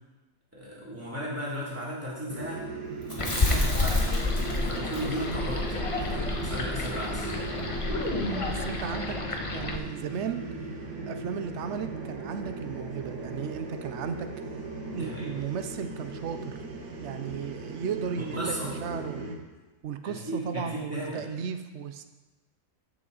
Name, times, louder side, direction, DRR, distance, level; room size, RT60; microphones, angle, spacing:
voice 1, 0.5-2.6 3.2-4.2 4.5-5.7 5.9-7.3 14.9-15.4 18.2-18.7 20.0-21.3, equal, 10° right, -7 dB, 3.0 m, -36 dB
sound 1, 2.3-19.4, right 3 dB, 90° right, 1.9 m, -38 dB
Chewing mastication, 3.0-7.2 7.5-7.6 7.9-8.6, left 1 dB, 20° left, 2.0 m, -36 dB
sound 2, 3.2-9.8, left 3 dB, 40° left, 0.4 m, -30 dB
voice 2, 8.5-9.2 9.5-10.4 11.1-14.3 14.9-16.6 17.0-19.3 19.8-22.0, right 7 dB, 60° right, 9 dB, 0.7 m, -35 dB
14.0 x 6.2 x 4.0 m, 1.1 s
omnidirectional pair, 1.8 m